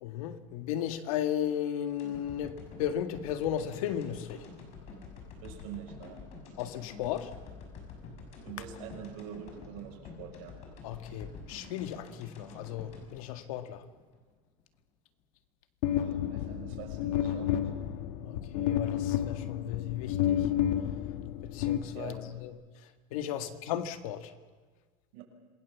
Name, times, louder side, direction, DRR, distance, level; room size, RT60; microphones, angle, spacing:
voice 1, 0.0-4.5 6.6-7.3 10.8-13.8 18.2-20.5 21.4-22.1 22.4-22.5 23.1-24.3, left 10 dB, 85° left, 1.9 m, -35 dB
sound 1, 2.0-14.2 14.6-14.7, left 4 dB, 40° left, 5.6 m, -48 dB
voice 2, 5.4-6.2 8.0-8.1 8.4-10.6 15.9-17.7 21.9-22.4 23.3-23.6 25.1-25.2, right 8 dB, 75° right, 6.3 m, -45 dB
sound 2, 15.8-22.4, left 11 dB, 70° left, 1.5 m, -31 dB
27.0 x 20.0 x 7.3 m
cardioid pair, 170°, 17 cm